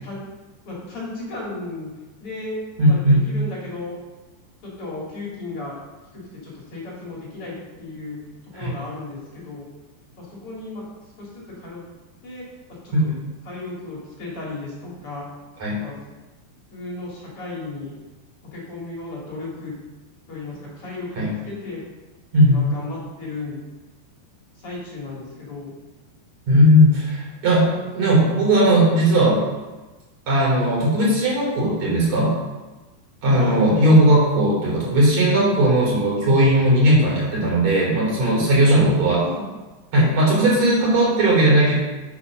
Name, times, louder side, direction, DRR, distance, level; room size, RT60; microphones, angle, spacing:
voice 1, 0.7-1.9 2.2-2.6 2.9-4.0 4.6-5.8 6.1-8.2 8.5-9.7 10.2-10.8 11.2-11.8 12.2-13.1 13.4-15.3 15.8-16.0 16.7-17.9 18.5-19.7 20.3-21.8 22.4-23.6 24.6-25.7 33.4-33.6 38.7-38.8 39.2-39.5, left 2 dB, 40° left, -5 dB, 2.4 m, -34 dB
voice 2, 2.8-3.2 8.5-8.7 12.9-13.0 15.6-15.8 21.2-21.3 22.3-22.6 26.5-27.7 27.9-29.4 30.3-32.3 33.2-39.2 39.9-41.7, right 1 dB, 40° right, -5 dB, 4.4 m, -17 dB
7.7 x 7.7 x 6.3 m, 1.2 s
omnidirectional pair, 5.2 m